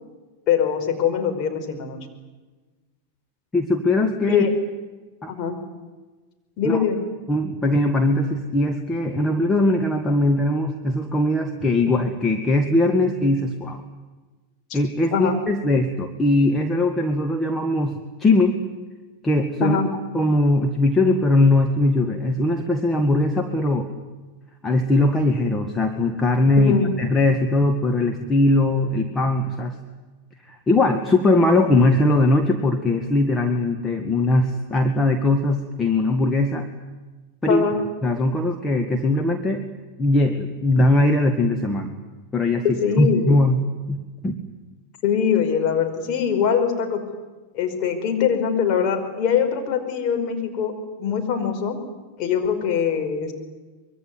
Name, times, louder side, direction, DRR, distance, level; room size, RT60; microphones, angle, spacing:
voice 1, 0.5-2.0 4.3-4.5 5.3-5.6 6.6-7.0 14.7-14.8 15.1-15.4 19.6-19.9 26.6-26.9 37.5-37.8 42.6-43.4 45.0-47.0 47.5-50.7 51.0-51.8 52.2-53.3, left 7 dB, 40° left, 3 dB, 5.3 m, -22 dB
voice 2, 3.5-4.4 5.2-5.3 6.6-6.8 7.3-13.8 14.7-18.6 19.2-19.8 20.1-23.9 24.6-26.7 27.0-29.8 30.4-36.7 37.4-37.6 38.0-39.6 40.0-42.0 42.3-42.6 43.0-43.6 43.9-44.4, left 2 dB, 15° left, 4 dB, 1.9 m, -20 dB
25.0 x 22.5 x 9.6 m, 1.2 s
figure-of-eight pair, 90°, 0 cm